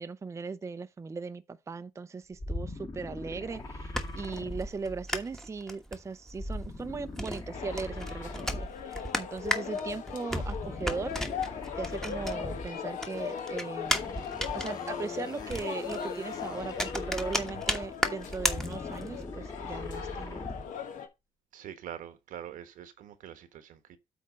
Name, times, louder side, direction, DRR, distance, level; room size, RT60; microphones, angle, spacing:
voice 1, 0.0-11.2 11.8-14.2 14.5-20.6, right 4 dB, 20° right, 0.5 m, -38 dB
sound 1, 2.3-5.4 6.3-9.0 10.3-12.9 13.8-17.8 18.3-20.8, left 1 dB, 30° left, 1.7 m, -41 dB
sound 2, 3.5-12.7 13.0-19.2, equal, 5° left, 1.2 m, -35 dB
sound 3, 7.5-21.1, left 7 dB, 75° left, 1.5 m, -39 dB
voice 2, 21.5-24.0, right 10 dB, 80° right, 1.2 m, -44 dB
8.5 x 3.5 x 6.2 m
cardioid pair, 100°, 13 cm